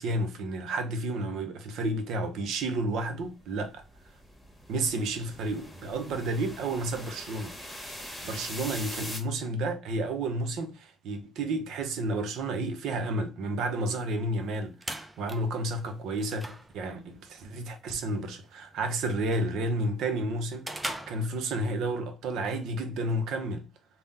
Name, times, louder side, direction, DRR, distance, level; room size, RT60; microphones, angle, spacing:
voice 1, 0.0-3.8 4.7-7.8 8.2-23.7, right 2 dB, 85° right, 0.7 m, -31 dB
sound 1, 3.2-9.2, left 1 dB, 10° left, 1.6 m, -42 dB
sound 2, 14.4-21.9, right 1 dB, 15° right, 0.6 m, -43 dB
3.6 x 2.3 x 3.9 m
cardioid pair, 90°, 0 cm